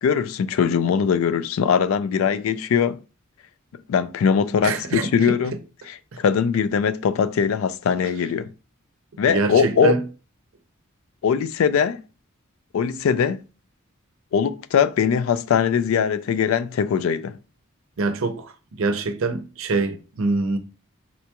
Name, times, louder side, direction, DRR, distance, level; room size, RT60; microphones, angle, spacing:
voice 1, 0.0-3.0 3.9-5.5 5.9-8.5 9.2-9.9 11.2-12.0 12.7-13.4 14.3-17.3, left 7 dB, 70° left, 0.3 m, -21 dB
voice 2, 4.6-5.4 9.3-10.0 18.0-18.5 18.8-20.6, right 3 dB, 70° right, 0.5 m, -24 dB
4.0 x 2.3 x 2.8 m
head